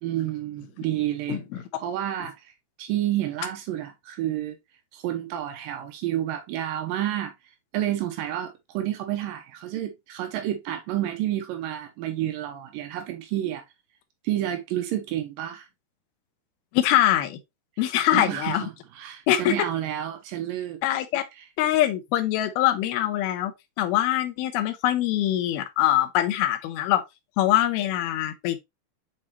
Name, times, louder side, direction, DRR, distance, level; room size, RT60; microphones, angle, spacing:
voice 1, 0.0-1.4 1.8-2.5 2.8-4.6 4.9-7.3 7.7-13.6 14.2-15.7 18.1-20.8 21.4-21.5, right 12 dB, 85° right, 1.9 m, -30 dB
voice 2, 16.7-17.4 17.8-18.6 19.3-19.5 20.8-21.2 21.6-23.5 23.8-27.0 27.4-28.6, left 13 dB, 75° left, 2.3 m, -23 dB
7.4 x 4.3 x 3.1 m
omnidirectional pair, 5.2 m